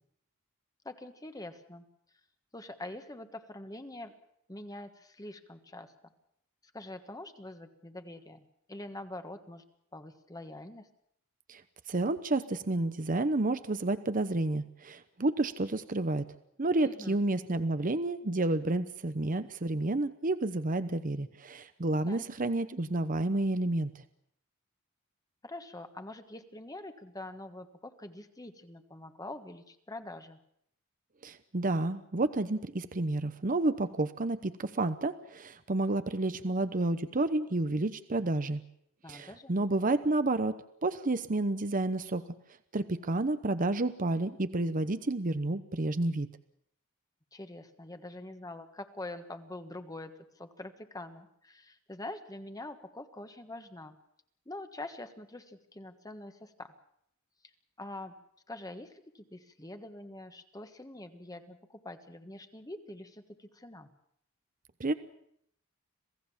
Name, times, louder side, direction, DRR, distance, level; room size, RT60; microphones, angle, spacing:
voice 1, 0.8-1.8 2.5-4.1 4.5-5.9 6.7-8.4 8.7-9.6 9.9-10.9 16.8-17.2 22.1-22.3 25.4-30.4 39.0-39.5 47.3-54.0 54.4-56.7 57.8-58.1 58.5-63.9, left 2 dB, 15° left, 8 dB, 1.4 m, -45 dB
voice 2, 11.9-16.3 16.6-24.0 31.2-38.6 39.1-42.2 42.7-46.3 64.8-64.9, right 2 dB, 40° right, 12 dB, 0.8 m, -30 dB
27.0 x 17.0 x 7.2 m, 0.71 s
head